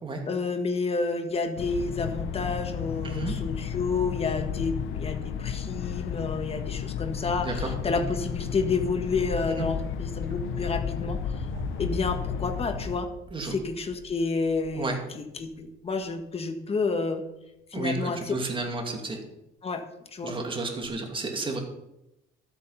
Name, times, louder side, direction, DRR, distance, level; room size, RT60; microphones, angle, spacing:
voice 1, 0.3-11.5 11.8-13.1 13.5-17.2 17.7-18.4 19.6-19.8 20.1-20.4, left 4 dB, 30° left, 7 dB, 1.4 m, -30 dB
sound 1, 1.6-13.0, left 8 dB, 70° left, 0.8 m, -33 dB
voice 2, 3.0-3.3 7.4-8.0 9.5-9.7 13.3-13.5 14.7-15.0 17.7-19.2 20.2-21.6, right 3 dB, 25° right, 3 dB, 2.5 m, -32 dB
sound 2, 10.2-16.1 17.8-18.3 20.8-20.9, right 2 dB, 45° right, 2.2 m, -43 dB
12.5 x 8.3 x 5.7 m, 0.89 s
cardioid pair, 125°, 21 cm